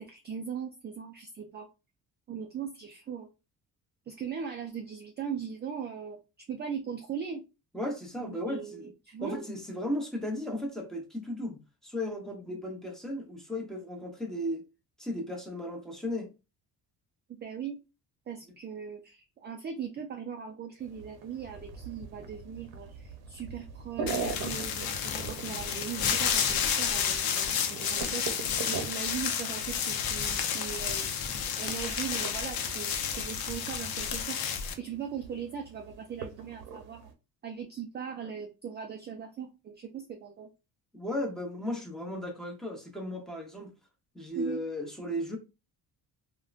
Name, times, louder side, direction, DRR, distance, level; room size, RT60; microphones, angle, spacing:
voice 1, 0.0-1.7 2.3-3.3 4.1-6.2 6.5-7.4 8.2-9.4 17.4-17.8 18.3-31.1 31.6-34.4 34.8-37.1 37.4-40.5 44.4-44.6, right 7 dB, 30° right, 0.4 m, -39 dB
voice 2, 7.7-8.9 9.2-14.7 15.0-16.3 40.9-43.7 44.1-45.4, left 1 dB, ahead, 0.8 m, -35 dB
sound 1, 20.8-37.1, right 5 dB, 70° right, 0.7 m, -43 dB
sound 2, 24.1-34.7, left 7 dB, 65° left, 0.6 m, -31 dB
3.6 x 2.2 x 2.4 m
cardioid pair, 130°, 39 cm